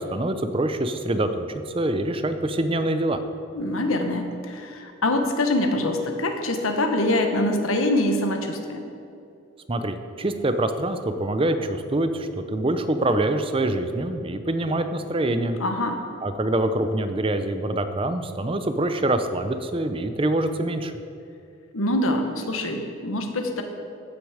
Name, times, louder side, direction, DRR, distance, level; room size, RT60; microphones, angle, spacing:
voice 1, 0.0-1.5 1.7-3.2 9.7-15.6 16.2-20.9, right 1 dB, 25° right, 9 dB, 0.6 m, -25 dB
voice 2, 3.5-8.8 15.6-16.0 21.7-23.6, left 1 dB, 85° left, 5 dB, 1.2 m, -24 dB
15.5 x 6.3 x 5.0 m, 2.7 s
head